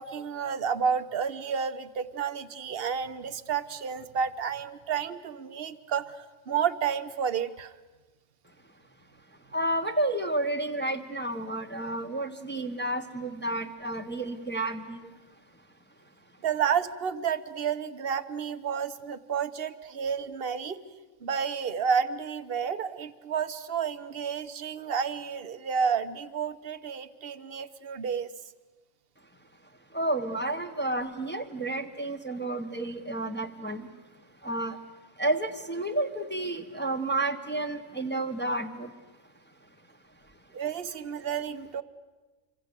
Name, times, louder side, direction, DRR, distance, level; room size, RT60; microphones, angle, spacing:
voice 1, 0.0-7.7 16.4-20.8 21.2-28.3 40.5-41.8, right 7 dB, 45° right, 12 dB, 1.2 m, -31 dB
voice 2, 9.5-15.1 29.9-33.9 34.4-34.8 35.2-38.9, right 2 dB, 10° left, 5 dB, 1.3 m, -31 dB
26.5 x 25.0 x 8.2 m, 1.2 s
omnidirectional pair, 1.5 m